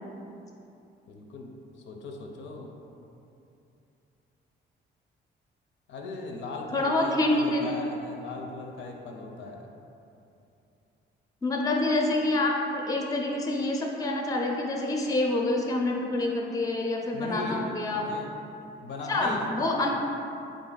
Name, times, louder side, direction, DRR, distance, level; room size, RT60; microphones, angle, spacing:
voice 1, 1.1-1.5 1.9-2.8 5.9-9.7 17.1-18.3 18.8-19.5, left 3 dB, 70° left, 2 dB, 0.5 m, -38 dB
voice 2, 6.7-7.7 11.4-18.1 19.1-19.9, left 2 dB, 20° left, 0 dB, 0.4 m, -27 dB
3.7 x 2.5 x 3.8 m, 2.8 s
cardioid pair, 90°, 20 cm